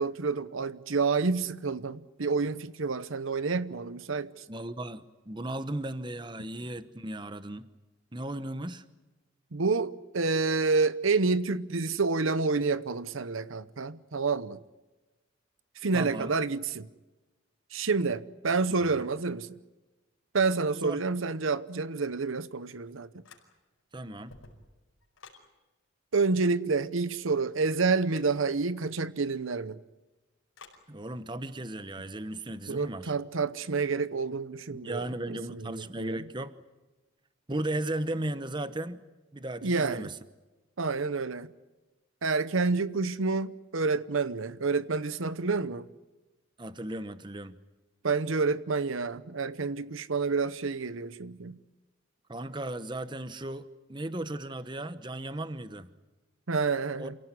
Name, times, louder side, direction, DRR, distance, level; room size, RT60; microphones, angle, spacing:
voice 1, 0.0-4.4 9.5-14.6 15.8-16.9 17.7-19.6 20.3-23.1 26.1-29.8 32.7-36.2 39.6-40.1 40.8-41.5 42.2-45.9 48.0-51.6 56.5-57.2, right 4 dB, 75° right, 0.8 m, -29 dB
voice 2, 4.5-7.7 8.1-8.8 15.9-16.3 18.8-19.1 20.8-21.0 23.9-24.3 30.9-33.1 34.7-36.5 37.5-39.0 39.3-40.2 46.6-47.6 52.3-55.9 57.0-57.1, right 1 dB, 20° right, 0.9 m, -36 dB
sound 1, 23.2-23.8 24.2-25.5 28.1-28.4 30.5-30.9, left 4 dB, 85° left, 5.2 m, -53 dB
28.0 x 17.5 x 9.7 m
head